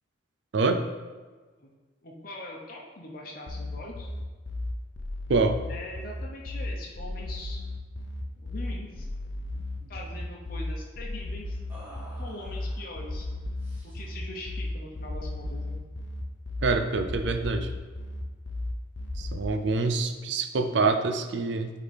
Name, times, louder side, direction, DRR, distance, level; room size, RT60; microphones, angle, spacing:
voice 1, 2.0-4.1 5.7-7.6 8.4-9.1 9.9-11.6 12.2-13.3 13.9-15.7, left 1 dB, 50° left, -2 dB, 0.9 m, -42 dB
sound 1, 3.5-19.5, left 2 dB, 80° left, 0.7 m, -35 dB
sound 2, 8.4-8.6 8.8-9.0 9.4-10.1 11.7-12.9 13.6-14.2, equal, 10° right, 1.4 m, -50 dB
voice 2, 16.6-17.7 19.2-21.7, right 3 dB, 70° right, 7 dB, 0.5 m, -26 dB
8.1 x 3.8 x 3.5 m, 1.3 s
head